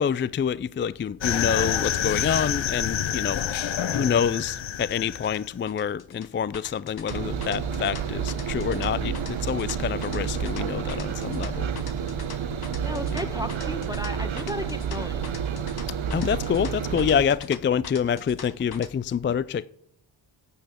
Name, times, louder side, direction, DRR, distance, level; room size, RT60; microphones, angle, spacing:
voice 1, 0.0-3.4 3.9-11.7 13.1-13.3 16.1-19.7, left 7 dB, 25° left, 0.3 m, -27 dB
sound 1, 1.2-5.5, left 10 dB, 65° left, 0.8 m, -27 dB
sound 2, 2.2-18.9, left 5 dB, 50° left, 1.3 m, -43 dB
Engine, 7.1-17.2, right 7 dB, 70° right, 1.1 m, -30 dB
voice 2, 12.8-15.3, equal, 10° right, 1.0 m, -34 dB
9.7 x 6.8 x 8.3 m
cardioid pair, 50°, 49 cm